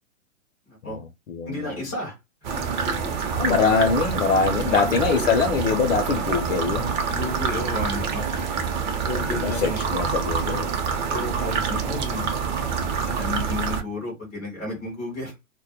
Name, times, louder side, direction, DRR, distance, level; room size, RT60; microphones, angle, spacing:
voice 1, 0.7-1.0 1.5-2.2 2.5-2.7 4.5-5.3 7.1-8.3 9.0-9.8 11.1-12.3 13.1-15.3, left 2 dB, 5° left, 0.3 m, -32 dB
voice 2, 1.3-1.7 3.4-7.0 9.1-11.1, left 5 dB, 65° left, 0.6 m, -24 dB
sound 1, 2.4-13.8, right 6 dB, 35° right, 0.6 m, -26 dB
2.1 x 2.1 x 2.7 m
hypercardioid pair, 135°, 41 cm